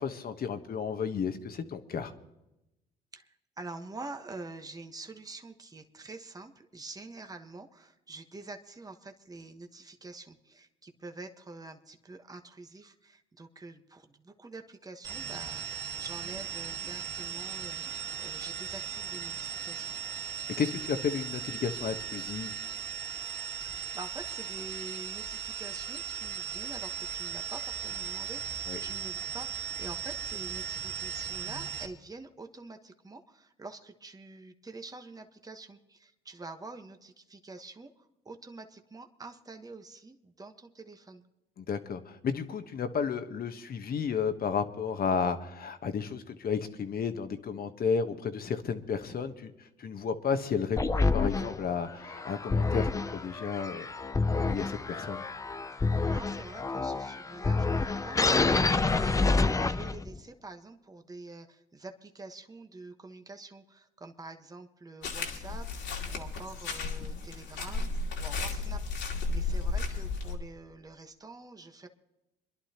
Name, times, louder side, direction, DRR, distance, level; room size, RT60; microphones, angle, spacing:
voice 1, 0.0-2.1 20.6-22.5 28.7-28.8 41.6-53.9 54.3-55.2, left 6 dB, 50° left, 8 dB, 1.2 m, -32 dB
voice 2, 3.1-19.9 23.6-41.2 55.7-71.9, right 3 dB, 20° right, 6 dB, 1.2 m, -47 dB
sound 1, 15.0-31.9, right 8 dB, 75° right, 2.0 m, -37 dB
sound 2, 50.8-60.2, left 3 dB, 15° left, 0.5 m, -28 dB
sound 3, 65.0-70.4, left 3 dB, 70° left, 2.3 m, -34 dB
27.5 x 11.0 x 2.9 m, 0.91 s
supercardioid pair, 75°, 20 cm